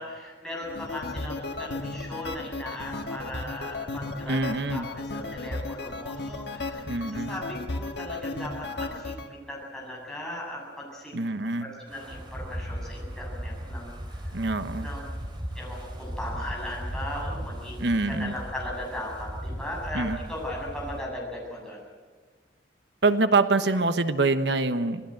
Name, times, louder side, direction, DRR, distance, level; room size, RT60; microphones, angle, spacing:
voice 1, 0.0-9.1 9.5-14.2 14.8-15.1 15.5-21.8, left 1 dB, 5° left, -3 dB, 7.7 m, -38 dB
sound 1, 0.6-9.3, left 2 dB, 70° left, 1.8 m, -35 dB
voice 2, 4.3-4.9 6.9-7.3 11.1-11.7 14.3-14.9 17.8-18.3 19.9-20.2 23.0-25.0, right 3 dB, 75° right, 10 dB, 1.2 m, -25 dB
Wind, 11.9-21.0, equal, 25° right, 3.9 m, -37 dB
26.5 x 18.5 x 7.9 m, 1.5 s
head